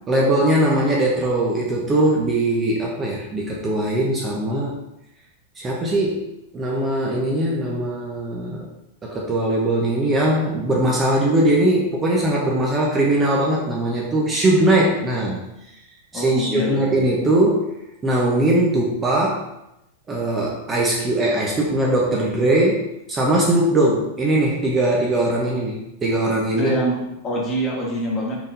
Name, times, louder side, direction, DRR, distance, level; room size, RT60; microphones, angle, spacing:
voice 1, 0.1-4.7 5.6-6.3 6.5-8.7 9.0-15.4 16.1-17.7 18.0-19.5 20.1-26.7, right 1 dB, 20° right, -3 dB, 0.7 m, -20 dB
voice 2, 16.1-16.9 26.5-28.4, equal, 20° left, -4 dB, 1.3 m, -24 dB
4.4 x 3.7 x 2.6 m, 0.88 s
supercardioid pair, 140°, 0 cm